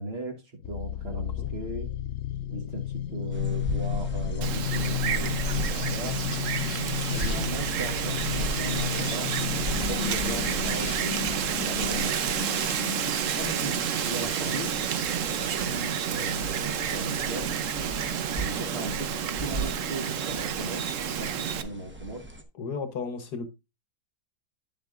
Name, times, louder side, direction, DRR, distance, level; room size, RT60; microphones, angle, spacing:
voice 1, 0.0-1.9 2.5-6.2 7.2-9.6 9.9-12.3 13.3-14.8 15.2-17.5 18.4-19.1 19.4-20.9 21.2-22.3, right 1 dB, 40° right, 1.3 m, -37 dB
sound 1, 0.6-16.4 17.5-18.1, left 11 dB, 80° left, 0.6 m, -34 dB
voice 2, 1.1-1.5 7.1-7.5 22.6-23.5, left 5 dB, 65° left, 1.5 m, -35 dB
sound 2, 3.3-22.4, equal, 15° right, 0.5 m, -38 dB
Wind, 4.4-21.6, right 8 dB, 60° right, 0.9 m, -30 dB
9.7 x 7.5 x 2.5 m
omnidirectional pair, 2.0 m